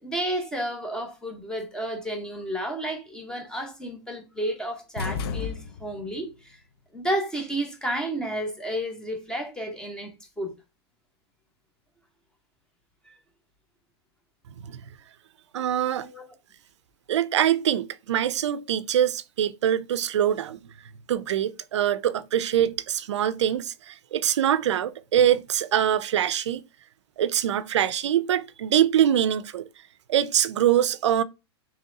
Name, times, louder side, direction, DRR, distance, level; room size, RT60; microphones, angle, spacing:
voice 1, 0.0-6.6 6.9-10.5 13.1-13.2 15.9-16.3, right 1 dB, 5° left, 0.8 m, -32 dB
sound 1, 5.0-6.2, left 5 dB, 60° left, 0.6 m, -32 dB
voice 2, 15.5-16.1 17.1-20.6 21.1-26.6 27.2-29.6 30.1-31.2, right 10 dB, 90° right, 0.4 m, -24 dB
3.8 x 3.1 x 2.6 m
hypercardioid pair, 140°, 14 cm